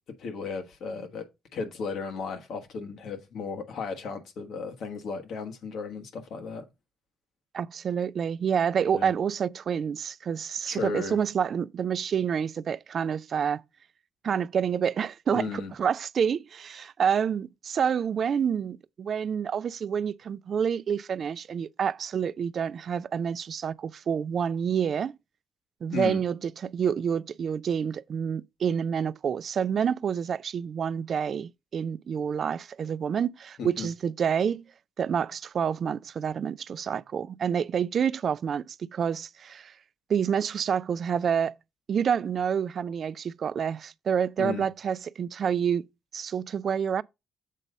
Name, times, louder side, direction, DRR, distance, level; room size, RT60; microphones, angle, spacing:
voice 1, 0.2-6.6 8.9-9.1 10.7-11.2 15.3-15.7 25.9-26.2 33.6-33.9 44.4-44.7, left 5 dB, 75° left, 1.5 m, -35 dB
voice 2, 7.5-13.6 14.2-25.2 25.8-34.6 35.0-39.7 40.1-41.5 41.9-45.9 46.1-47.0, right 7 dB, 60° right, 0.4 m, -28 dB
7.3 x 3.9 x 5.4 m
supercardioid pair, 60°, 0 cm